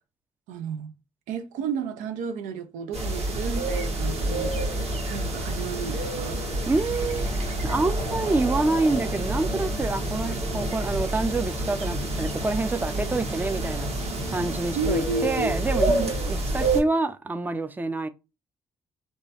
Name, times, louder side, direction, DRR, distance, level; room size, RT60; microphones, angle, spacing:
voice 1, 0.5-0.9 1.3-6.4 14.8-15.6 15.9-16.1, right 5 dB, 85° right, 0.4 m, -32 dB
sound 1, 2.9-16.8, right 1 dB, 55° right, 1.3 m, -28 dB
voice 2, 6.7-7.3 7.6-13.9 14.3-18.1, right 3 dB, 15° right, 0.4 m, -27 dB
3.0 x 2.2 x 2.7 m
supercardioid pair, 55°, 13 cm